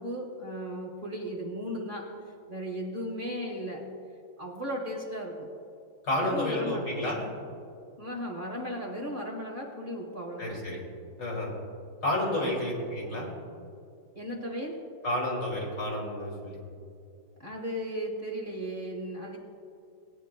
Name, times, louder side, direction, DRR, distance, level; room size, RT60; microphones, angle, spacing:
voice 1, 0.0-2.1 2.5-3.9 4.4-5.5 6.2-6.9 8.0-10.6 12.3-12.6 14.1-14.8 17.4-19.4, equal, 30° right, -1 dB, 1.2 m, -36 dB
voice 2, 6.0-7.3 10.4-10.8 11.2-11.5 12.0-13.3 15.0-16.6, left 1 dB, 75° left, -3 dB, 2.9 m, -30 dB
19.5 x 9.3 x 2.2 m, 2.4 s
omnidirectional pair, 1.9 m